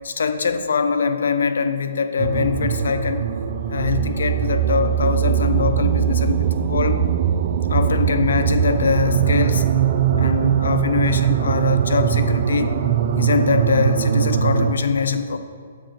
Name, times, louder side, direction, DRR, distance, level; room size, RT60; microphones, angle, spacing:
voice 1, 0.0-3.2 3.7-7.0 7.7-9.7 10.2-12.7 13.1-15.4, left 5 dB, 70° left, 9 dB, 0.4 m, -22 dB
sound 1, 2.2-14.7, right 8 dB, 50° right, 0.5 m, -20 dB
7.5 x 3.9 x 5.0 m, 2.1 s
figure-of-eight pair, 125°, 0 cm